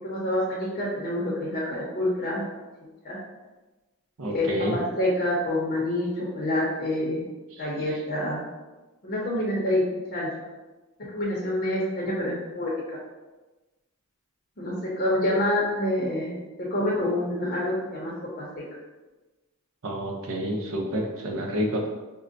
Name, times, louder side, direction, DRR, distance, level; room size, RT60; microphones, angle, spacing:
voice 1, 0.0-2.5 3.0-3.2 4.3-7.3 7.6-8.4 9.0-9.8 10.1-10.3 11.1-13.0 14.6-18.1 18.4-18.6, left 1 dB, 40° left, -5 dB, 0.7 m, -27 dB
voice 2, 4.2-4.8 7.5-7.6 19.8-21.9, equal, 65° right, 2 dB, 0.6 m, -29 dB
5.2 x 2.1 x 2.5 m, 1.2 s
head